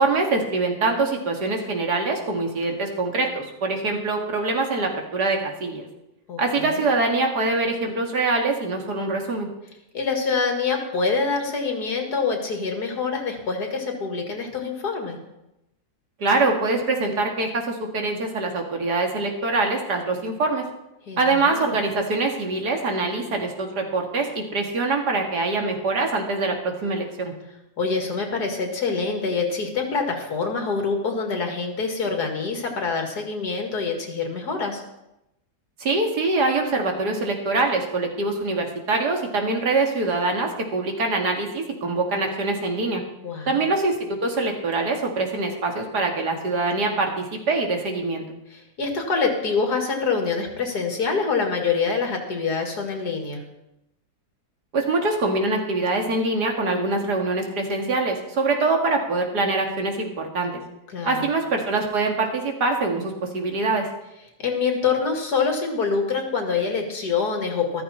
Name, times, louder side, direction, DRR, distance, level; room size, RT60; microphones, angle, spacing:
voice 1, 0.0-5.9 6.4-9.5 16.2-20.6 21.2-27.3 35.8-43.0 43.5-48.3 54.7-60.5 61.0-63.9, right 3 dB, 85° right, 2 dB, 2.6 m, -24 dB
voice 2, 6.3-6.9 9.9-15.2 21.1-21.8 27.8-34.8 43.2-43.7 48.5-53.4 60.9-61.3 64.4-67.8, left 4 dB, 75° left, 3 dB, 2.7 m, -25 dB
14.0 x 13.5 x 4.4 m, 0.89 s
omnidirectional pair, 1.7 m